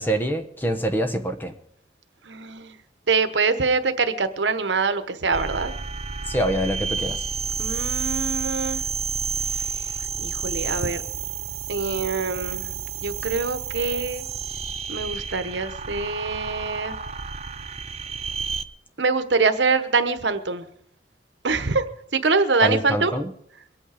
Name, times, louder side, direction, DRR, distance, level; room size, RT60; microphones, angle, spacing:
voice 1, 0.0-1.5 6.3-7.2 22.6-23.3, right 1 dB, 10° left, 7 dB, 1.0 m, -25 dB
voice 2, 2.3-2.7 3.1-5.7 7.6-8.8 9.5-11.0 11.7-12.7 13.0-14.2 14.9-16.9 19.0-20.7 21.4-21.8 22.1-23.2, right 4 dB, 75° right, 10 dB, 1.1 m, -24 dB
sound 1, 5.3-18.7, right 5 dB, 35° right, 0.6 m, -30 dB
23.5 x 8.6 x 5.0 m, 0.67 s
head